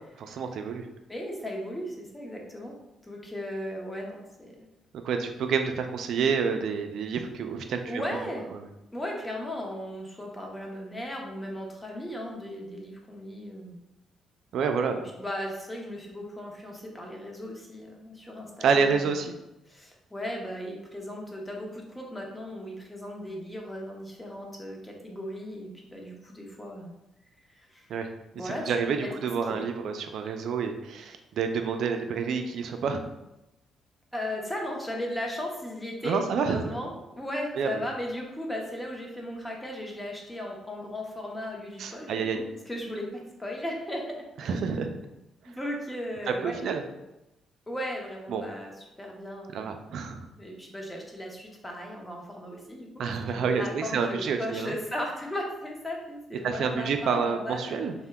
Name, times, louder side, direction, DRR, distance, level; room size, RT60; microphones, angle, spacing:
voice 1, 0.2-0.9 5.0-8.0 8.5-8.7 14.5-15.0 18.6-19.3 27.9-28.1 28.4-33.0 36.0-36.8 37.6-37.8 41.8-42.4 44.4-44.9 46.4-46.8 48.3-48.4 49.5-50.3 53.0-54.8 56.4-57.9, right 5 dB, 70° right, 6 dB, 0.3 m, -28 dB
voice 2, 1.1-2.7 3.0-4.7 7.9-8.5 8.9-13.8 15.2-19.1 19.7-26.9 27.5-27.9 28.4-29.1 29.5-29.7 34.1-44.7 45.5-46.6 47.7-48.7 49.0-49.7 50.4-52.9 53.2-57.8, left 1 dB, 10° left, 0 dB, 0.7 m, -36 dB
2.7 x 2.1 x 3.4 m, 0.94 s
cardioid pair, 90°, 0 cm